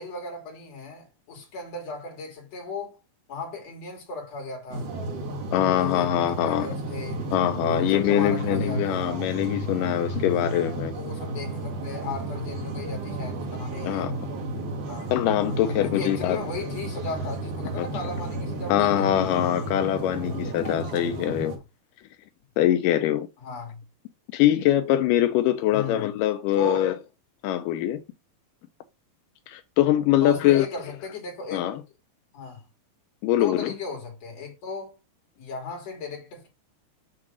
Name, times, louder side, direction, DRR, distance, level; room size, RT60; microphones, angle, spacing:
voice 1, 0.0-3.0 3.3-4.9 5.8-7.3 7.7-9.2 10.9-14.1 14.9-15.1 15.6-19.2 21.5-21.6 23.4-23.8 25.7-26.1 26.5-26.9 30.2-31.8 32.3-32.6 33.4-35.0 35.4-36.5, left 3 dB, 45° left, 3.5 m, -36 dB
sound 1, 4.7-21.6, right 2 dB, 60° right, 3.4 m, -32 dB
voice 2, 5.5-6.7 7.3-10.9 13.8-14.3 15.1-16.4 17.8-17.9 18.7-21.6 22.6-23.3 24.3-27.0 27.4-28.0 29.5-30.7 31.5-31.8 33.2-33.7, left 12 dB, 80° left, 2.0 m, -23 dB
7.5 x 3.7 x 6.2 m
omnidirectional pair, 4.3 m